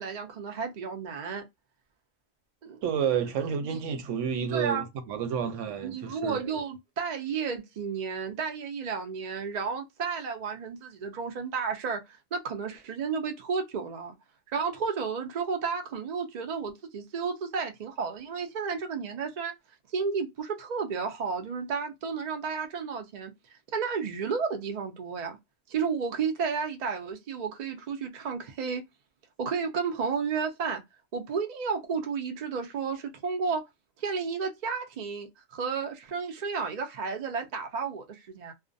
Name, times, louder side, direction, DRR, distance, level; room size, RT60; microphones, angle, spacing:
voice 1, 0.0-1.5 2.6-2.8 3.6-3.8 4.5-4.8 5.8-14.1 14.5-19.5 19.9-23.3 23.7-25.4 25.7-28.8 29.4-30.8 31.1-33.6 34.0-38.5, right 5 dB, 90° right, 0.3 m, -32 dB
voice 2, 2.8-6.5, right 7 dB, 70° right, 0.9 m, -30 dB
2.4 x 2.1 x 2.5 m
omnidirectional pair, 1.4 m